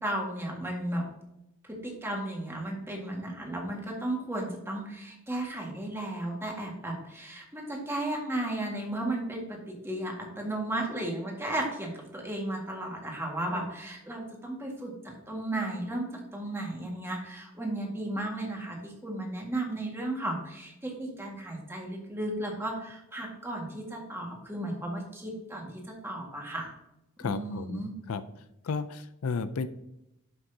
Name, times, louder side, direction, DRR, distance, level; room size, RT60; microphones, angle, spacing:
voice 1, 0.0-1.1 1.8-16.1 16.3-26.7 27.2-27.9, right 1 dB, 10° right, 0 dB, 1.8 m, -34 dB
voice 2, 27.2-28.2 28.6-29.7, left 4 dB, 70° left, 12 dB, 0.4 m, -33 dB
11.0 x 6.2 x 2.8 m, 0.86 s
head